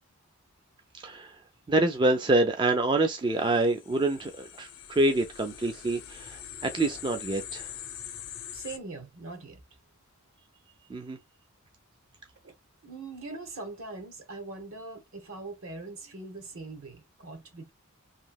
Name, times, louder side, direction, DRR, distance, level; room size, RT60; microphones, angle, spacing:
voice 1, 0.9-1.4 1.7-7.7 10.9-11.2, right 2 dB, 20° right, 0.3 m, -26 dB
sound 1, 3.4-8.8, left 10 dB, 65° left, 0.6 m, -43 dB
voice 2, 8.5-9.6 12.4-12.5 12.8-17.7, right 3 dB, 65° right, 1.0 m, -41 dB
2.9 x 2.7 x 2.2 m
head